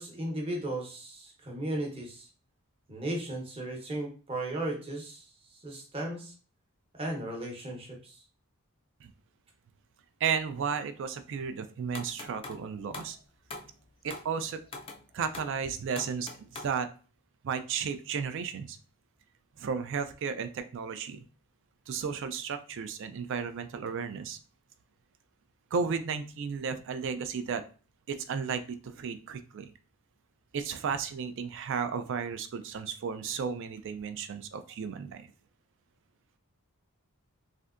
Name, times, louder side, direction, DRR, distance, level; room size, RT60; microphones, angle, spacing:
voice 1, 0.0-2.3 2.9-5.2 5.6-6.3 6.9-8.2, right 1 dB, 25° right, 0 dB, 0.8 m, -36 dB
voice 2, 10.2-13.2 14.0-14.6 15.1-16.9 17.4-18.8 19.6-21.2 21.9-24.4 25.7-27.6 28.1-29.7 30.5-35.3, right 6 dB, 55° right, 10 dB, 0.3 m, -34 dB
sound 1, 11.9-12.6 12.9-13.2 13.5-13.7 14.1-14.3 14.7-15.0 15.3-15.6 16.0-16.7, left 3 dB, 25° left, 0.4 m, -43 dB
3.3 x 2.6 x 2.5 m, 0.37 s
head